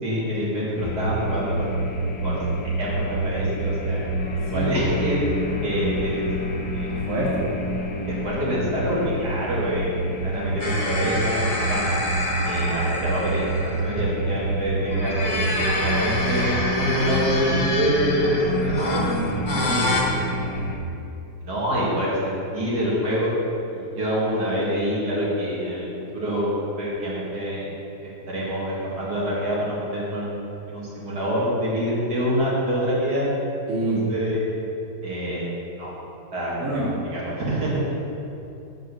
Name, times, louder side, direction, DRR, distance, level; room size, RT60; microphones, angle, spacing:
voice 1, 0.0-1.7 2.2-2.4 2.8-4.1 4.4-5.2 5.6-6.3 6.7-7.0 8.1-10.0 10.2-11.8 12.4-19.1 19.7-20.3 21.4-23.3 23.7-25.9 26.1-26.5 26.8-27.7 28.0-33.3 33.7-34.5 35.0-35.5 35.8-35.9 36.3-37.8, equal, 75° right, -7 dB, 2.4 m, -26 dB
sound 1, 0.8-20.7, right 1 dB, 60° left, 1.2 m, -28 dB
voice 2, 7.1-7.5 18.9-19.7 33.7-34.1 36.6-36.9, right 2 dB, 55° right, -8 dB, 2.6 m, -27 dB
sound 2, 10.6-14.1 14.8-20.0, left 1 dB, 35° left, 1.1 m, -27 dB
7.5 x 5.5 x 6.4 m, 2.9 s
omnidirectional pair, 1.7 m